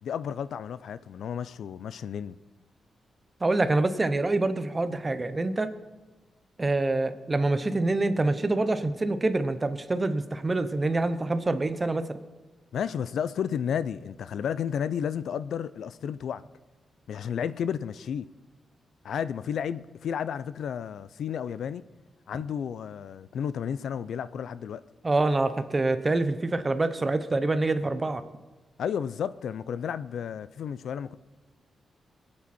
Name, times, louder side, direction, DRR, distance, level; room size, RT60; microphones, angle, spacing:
voice 1, 0.0-2.4 12.7-16.4 17.1-18.3 19.0-21.8 22.3-24.8 28.8-31.2, left 8 dB, 70° left, 15 dB, 0.4 m, -32 dB
voice 2, 3.4-5.7 6.6-12.2 25.0-28.2, right 2 dB, 20° right, 11 dB, 0.7 m, -26 dB
25.0 x 8.6 x 4.2 m, 1.2 s
wide cardioid pair, 180°, 0 cm